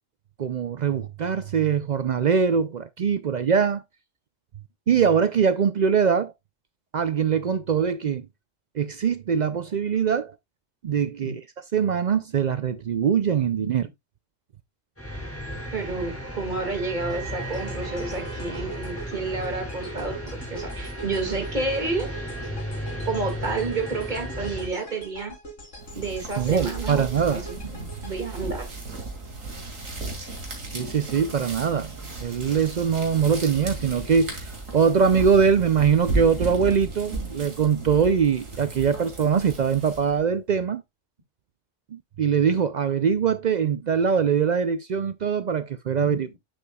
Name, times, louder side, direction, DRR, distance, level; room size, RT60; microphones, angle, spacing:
voice 1, 0.4-3.8 4.9-6.3 6.9-8.3 8.7-10.3 10.8-11.4 11.7-13.9 26.4-27.5 30.7-31.9 32.2-40.8 41.9-46.4, right 6 dB, 65° right, 0.4 m, -22 dB
sound 1, 15.0-24.7, equal, 10° left, 2.8 m, -34 dB
voice 2, 15.7-22.1 23.1-25.4 25.9-28.6 46.0-46.3, right 3 dB, 35° right, 2.2 m, -30 dB
sound 2, 17.1-29.3, right 1 dB, 70° left, 3.7 m, -43 dB
sound 3, 25.8-40.2, right 2 dB, 85° right, 2.6 m, -35 dB
8.9 x 6.9 x 2.2 m
omnidirectional pair, 1.3 m